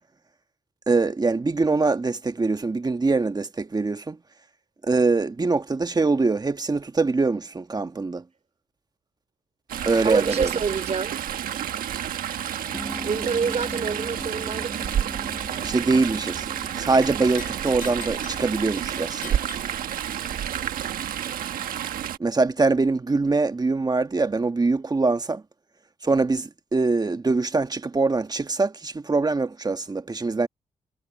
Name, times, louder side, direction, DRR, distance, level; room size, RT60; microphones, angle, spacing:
voice 1, 0.9-4.2 4.8-8.2 9.8-10.5 15.6-16.5 16.8-19.4 22.2-25.4 26.0-30.5, right 3 dB, 30° right, 1.4 m, -23 dB
Chatter / Stream, 9.7-22.2, right 10 dB, 85° right, 1.4 m, -30 dB
voice 2, 10.0-11.2 13.0-15.0, right 5 dB, 50° right, 4.0 m, -27 dB
sound 1, 12.7-20.9, equal, 5° left, 7.4 m, -40 dB
sound 2, 17.0-20.4, left 9 dB, 75° left, 6.1 m, -44 dB
cardioid pair, 75°, 14 cm